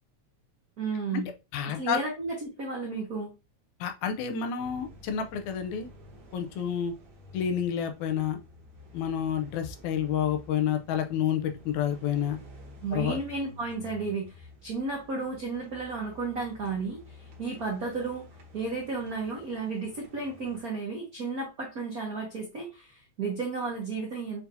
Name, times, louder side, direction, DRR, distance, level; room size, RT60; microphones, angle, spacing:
voice 1, 0.8-1.3 1.7-3.3 12.8-17.0 17.4-18.3 18.5-24.5, right 4 dB, 70° right, -1 dB, 0.8 m, -33 dB
voice 2, 1.5-2.0 3.8-5.9 6.3-6.9 7.3-8.4 8.9-12.4 12.9-13.2, left 8 dB, 85° left, 6 dB, 2.0 m, -29 dB
sound 1, 4.6-20.6, left 1 dB, 50° right, 1.2 m, -51 dB
6.6 x 2.7 x 2.7 m, 0.26 s
omnidirectional pair, 3.4 m